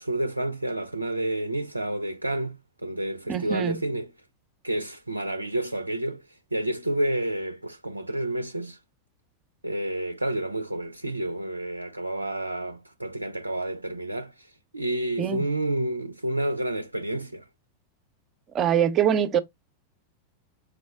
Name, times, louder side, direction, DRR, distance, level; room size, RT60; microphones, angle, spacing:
voice 1, 0.0-4.1 4.6-8.8 9.6-17.4, right 1 dB, 85° right, 0.4 m, -30 dB
voice 2, 3.3-3.8 15.2-15.4 18.5-19.4, right 9 dB, 30° right, 0.7 m, -23 dB
4.8 x 2.0 x 3.5 m
figure-of-eight pair, 90°, 0 cm